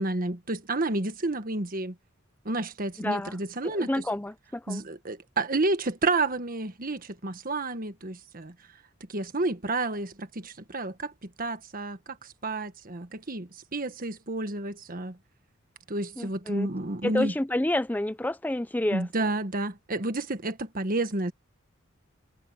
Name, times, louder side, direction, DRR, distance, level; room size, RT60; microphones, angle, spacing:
voice 1, 0.0-1.9 2.4-4.0 4.7-8.5 9.1-15.2 15.9-17.3 18.9-21.3, right 2 dB, 45° right, 1.5 m, -30 dB
voice 2, 3.0-3.4 3.6-4.8 16.2-16.7 17.0-19.3, left 1 dB, 10° left, 0.5 m, -29 dB
head